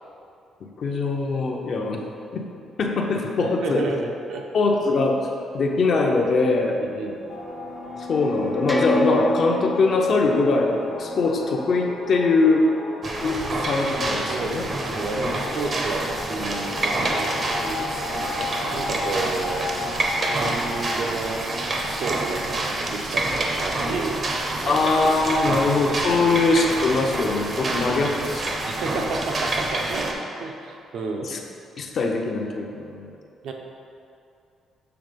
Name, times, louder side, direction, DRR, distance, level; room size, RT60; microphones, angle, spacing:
voice 1, 0.8-2.0 2.3-2.5 2.8-3.8 4.5-5.2 5.5-6.8 8.0-12.7 13.2-14.7 24.7-28.4 31.2-31.4 31.8-33.2, left 3 dB, 50° left, 1 dB, 0.7 m, -22 dB
voice 2, 3.4-4.5 6.8-7.2 13.4-13.5 14.3-20.0 20.3-21.5 21.8-24.3 24.6-25.0 25.4-25.6 26.3-26.5 27.6-27.9 28.7-31.3 33.4-33.5, right 3 dB, 65° right, 2 dB, 0.7 m, -32 dB
sound 1, 6.6-12.2, left 1 dB, 5° left, 0.4 m, -32 dB
sound 2, 7.3-21.0, left 3 dB, 90° left, 1.1 m, -35 dB
sound 3, 13.0-30.1, right 2 dB, 35° right, 0.7 m, -27 dB
6.9 x 3.4 x 5.2 m, 2.6 s
cardioid pair, 140°, 0 cm